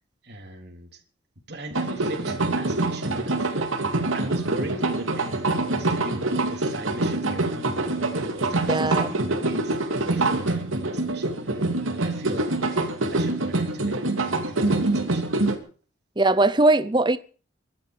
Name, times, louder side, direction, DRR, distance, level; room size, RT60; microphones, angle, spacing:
voice 1, 0.2-1.0 1.5-3.7 4.1-11.6 11.9-14.0 14.2-15.3, right 1 dB, 55° right, 3.8 m, -39 dB
sound 1, 1.7-15.6, right 2 dB, 85° right, 2.9 m, -25 dB
voice 2, 8.7-9.2 16.2-17.2, right 2 dB, 20° right, 0.7 m, -20 dB
23.0 x 11.5 x 5.2 m
head